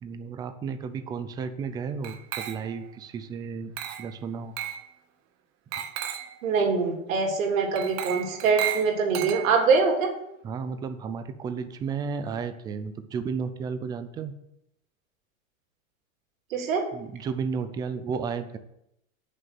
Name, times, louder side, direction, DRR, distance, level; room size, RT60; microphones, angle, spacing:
voice 1, 0.0-4.5 5.8-5.9 10.4-14.3 16.9-18.6, right 5 dB, 10° right, 10 dB, 0.4 m, -33 dB
Glass, 2.0-2.9 3.8-4.1 4.6-4.9 5.7-6.4 7.7-9.8, right 11 dB, 35° right, 1.1 m, -34 dB
voice 2, 6.4-10.1 16.5-16.8, right 5 dB, 75° right, 2 dB, 3.3 m, -23 dB
9.1 x 6.7 x 7.8 m, 0.80 s
supercardioid pair, 140°, 41 cm